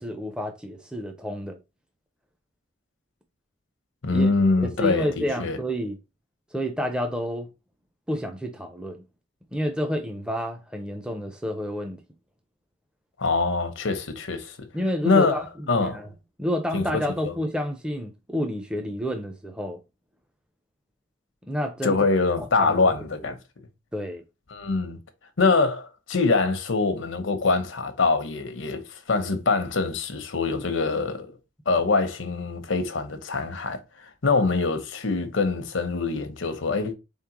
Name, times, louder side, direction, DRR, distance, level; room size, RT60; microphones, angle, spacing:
voice 1, 0.0-1.6 4.1-4.3 4.6-6.0 6.5-7.5 8.1-9.0 9.5-12.0 14.7-16.1 16.4-19.8 21.4-22.1 22.6-22.9 23.2-23.3 23.9-24.2, equal, 5° right, 0.5 m, -29 dB
voice 2, 4.0-5.6 13.2-14.7 15.0-15.4 15.7-16.0 16.7-17.3 21.8-23.4 24.5-25.0 25.4-31.3 31.7-36.9, left 3 dB, 80° left, 0.8 m, -24 dB
4.1 x 3.6 x 2.9 m
head